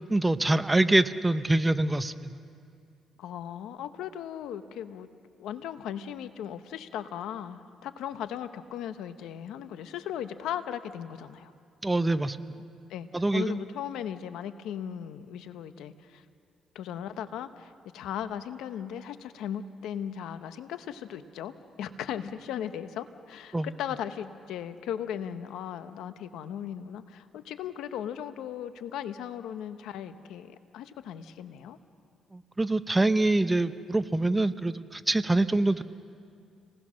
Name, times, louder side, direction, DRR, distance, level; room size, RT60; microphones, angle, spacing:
voice 1, 0.0-2.3 11.8-12.6 13.1-13.6 23.5-23.7 32.3-35.8, right 2 dB, 15° right, 12 dB, 0.8 m, -25 dB
voice 2, 3.2-5.1 5.4-11.5 12.5-12.6 12.9-13.1 13.3-16.2 16.7-21.5 21.8-31.8, left 9 dB, 85° left, 10 dB, 1.0 m, -37 dB
29.0 x 20.0 x 6.4 m, 2.3 s
cardioid pair, 90°, 0 cm